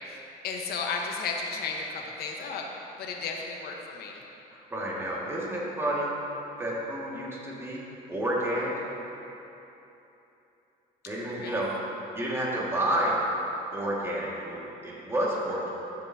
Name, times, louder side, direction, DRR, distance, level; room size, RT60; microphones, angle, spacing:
voice 1, 0.4-2.7 3.0-4.1 11.3-11.6, left 4 dB, 65° left, 0 dB, 1.2 m, -33 dB
voice 2, 4.5-6.2 6.6-7.8 8.1-8.7 11.1-11.7 12.1-13.2 13.7-15.7, right 1 dB, 15° right, -5 dB, 2.0 m, -30 dB
13.5 x 7.2 x 2.8 m, 3.0 s
cardioid pair, 110°, 17 cm